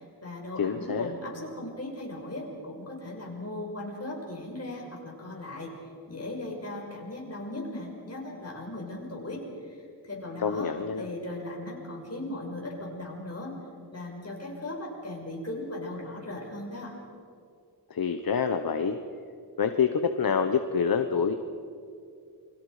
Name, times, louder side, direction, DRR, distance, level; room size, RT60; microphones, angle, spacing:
voice 1, 0.0-5.8 6.1-9.8 10.0-13.6 13.9-16.9, left 1 dB, 40° left, -1 dB, 5.8 m, -38 dB
voice 2, 0.6-1.1 10.4-11.1 17.9-19.0 19.6-21.3, left 6 dB, 65° left, 7 dB, 1.1 m, -26 dB
29.0 x 23.0 x 5.0 m, 2.4 s
wide cardioid pair, 105°, 38 cm